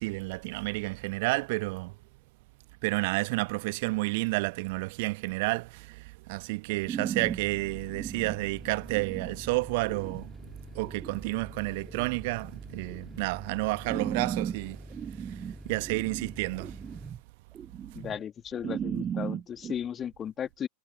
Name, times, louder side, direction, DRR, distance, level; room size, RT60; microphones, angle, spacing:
voice 1, 0.0-1.9 2.8-10.3 10.7-14.8 15.3-15.4 15.6-16.7, right 25 dB, 50° right, 1.1 m, -30 dB
sound 1, 6.9-7.4 7.9-8.4 8.9-9.4 9.8-10.2 10.8-11.3 11.9-12.3 12.9-13.2 13.8-14.6 14.9-17.2 17.5-18.2 18.5-19.7, right 8 dB, 25° right, 0.5 m, -36 dB
sound 2, 7.2-17.1, right 1 dB, 5° right, 2.2 m, -46 dB
voice 2, 17.9-20.7, left 9 dB, 25° left, 1.9 m, -35 dB
figure-of-eight pair, 90°, 0 cm